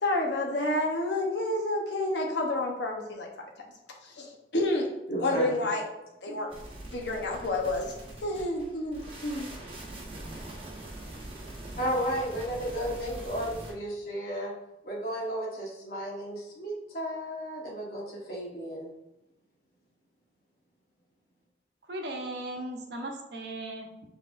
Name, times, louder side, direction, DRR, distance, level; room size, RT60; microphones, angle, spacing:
voice 1, 0.0-3.3 4.0-4.9 5.2-5.8 6.2-6.5 6.9-7.9 8.2-9.5, left 1 dB, 80° left, 1 dB, 0.8 m, -29 dB
voice 2, 5.1-5.6 11.8-14.5 14.8-18.9, equal, 55° left, -4 dB, 1.2 m, -33 dB
sound 1, 6.5-13.7, right 1 dB, 30° right, 1.0 m, -43 dB
voice 3, 21.9-24.1, right 1 dB, 70° right, 2 dB, 0.8 m, -37 dB
6.0 x 3.4 x 2.5 m, 0.92 s
head